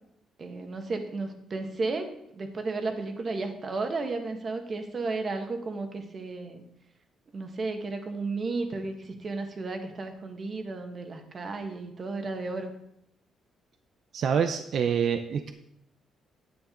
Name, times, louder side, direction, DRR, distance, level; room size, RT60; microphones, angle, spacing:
voice 1, 0.4-6.6 7.3-12.7, right 3 dB, 40° right, 5 dB, 1.5 m, -33 dB
voice 2, 14.1-15.5, right 7 dB, 60° right, 7 dB, 0.6 m, -26 dB
9.6 x 8.5 x 3.8 m, 0.77 s
cardioid pair, 90°, 0 cm